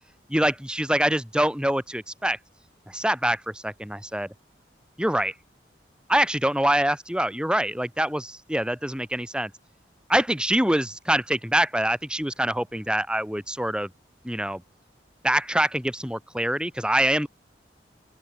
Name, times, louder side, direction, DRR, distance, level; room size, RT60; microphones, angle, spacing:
voice 1, 0.3-2.4 2.9-4.3 5.0-5.3 6.1-9.5 10.1-13.9 14.2-14.6 15.2-17.3, right 1 dB, 5° right, 4.2 m, -25 dB
open air
head